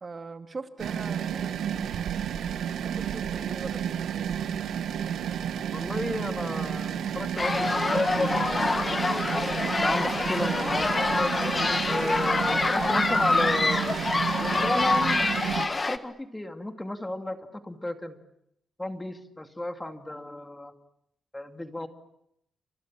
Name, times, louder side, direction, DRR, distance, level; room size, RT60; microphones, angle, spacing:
voice 1, 0.0-1.9 2.8-4.4, right 4 dB, 35° right, 7 dB, 2.3 m, -41 dB
sound 1, 0.8-15.7, right 9 dB, 90° right, 1.8 m, -31 dB
voice 2, 5.7-9.4 9.8-11.3 11.9-15.2 15.7-18.2 18.8-20.7 21.3-21.9, left 1 dB, 10° left, 6 dB, 2.4 m, -34 dB
sound 2, 7.4-16.0, left 3 dB, 30° left, 1.6 m, -26 dB
29.5 x 26.5 x 7.5 m, 0.76 s
cardioid pair, 100°, 0 cm